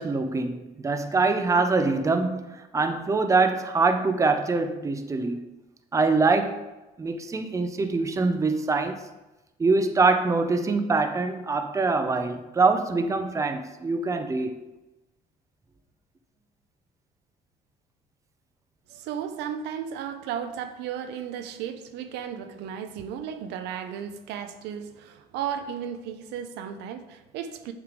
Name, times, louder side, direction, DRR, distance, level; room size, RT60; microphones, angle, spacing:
voice 1, 0.0-5.4 5.9-6.6 7.0-9.0 9.6-14.6, right 3 dB, 20° right, 0.6 m, -24 dB
voice 2, 18.9-27.7, right 8 dB, 85° right, 0.6 m, -34 dB
8.0 x 3.3 x 5.1 m
cardioid pair, 110°, 17 cm